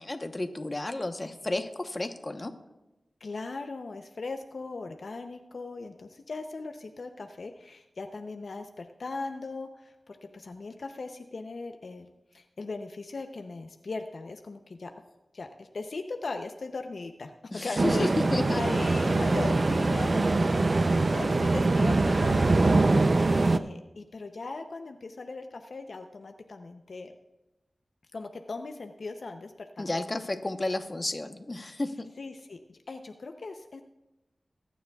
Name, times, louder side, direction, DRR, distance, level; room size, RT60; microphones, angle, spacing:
voice 1, 0.0-2.5 17.5-18.6 29.8-32.1, left 2 dB, 35° left, 7 dB, 0.9 m, -32 dB
voice 2, 3.2-18.1 18.5-22.8 23.4-27.1 28.1-30.0 32.2-33.8, left 3 dB, 70° left, 6 dB, 0.6 m, -39 dB
sound 1, 17.8-23.6, right 3 dB, 50° right, 0.5 m, -23 dB
22.5 x 9.4 x 2.3 m, 0.99 s
wide cardioid pair, 60°, 0 cm